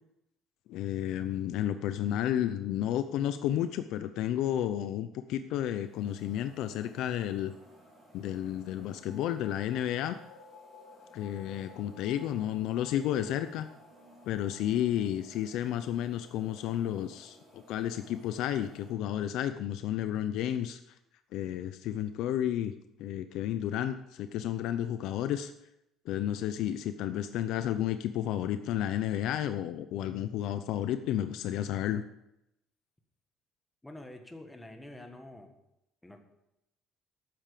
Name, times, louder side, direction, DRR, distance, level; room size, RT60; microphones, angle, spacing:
voice 1, 0.7-7.5 8.1-10.2 11.1-13.7 14.3-20.8 21.3-22.7 23.0-25.5 26.0-32.0, left 11 dB, 65° left, 10 dB, 0.7 m, -32 dB
sound 1, 5.7-18.9, right 1 dB, 15° right, 4.5 m, -59 dB
sound 2, 8.7-18.1, left 5 dB, 85° left, 2.5 m, -57 dB
voice 2, 33.8-35.5 36.0-36.2, left 1 dB, 5° left, 5 dB, 1.5 m, -47 dB
12.5 x 9.1 x 6.8 m, 0.84 s
cardioid pair, 170°, 0 cm